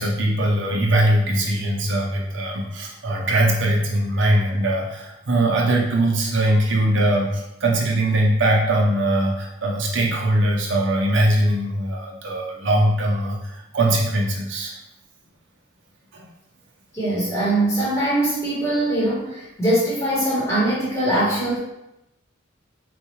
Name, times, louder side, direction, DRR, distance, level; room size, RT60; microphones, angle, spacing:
voice 1, 0.0-14.8 16.1-16.2, right 1 dB, 70° right, -1 dB, 0.7 m, -21 dB
voice 2, 16.9-21.6, right 1 dB, 15° left, -8 dB, 1.1 m, -22 dB
4.1 x 2.3 x 3.0 m, 0.89 s
head